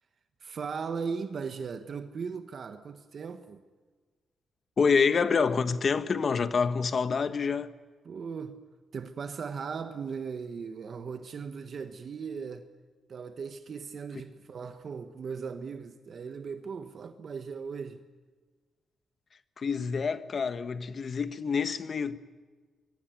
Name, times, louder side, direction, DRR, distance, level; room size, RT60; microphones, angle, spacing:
voice 1, 0.4-3.6 8.0-8.6 8.9-12.7 13.1-18.0, right 5 dB, 45° right, 1.4 m, -38 dB
voice 2, 4.8-7.7 19.6-22.2, left 5 dB, 40° left, 1.4 m, -27 dB
25.5 x 22.5 x 9.3 m
cardioid pair, 140°, 0 cm